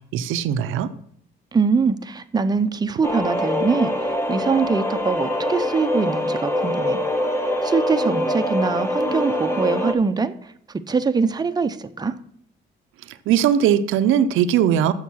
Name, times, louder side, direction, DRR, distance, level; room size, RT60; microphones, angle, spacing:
voice 1, 0.1-0.9 13.1-14.9, right 9 dB, 90° right, 11 dB, 0.6 m, -19 dB
voice 2, 1.5-7.0 7.6-10.5 10.9-12.2, right 5 dB, 20° right, 8 dB, 0.6 m, -23 dB
sound 1, 3.0-9.9, left 1 dB, 15° left, 1.2 m, -24 dB
7.1 x 6.5 x 6.1 m, 0.68 s
cardioid pair, 90°, 20 cm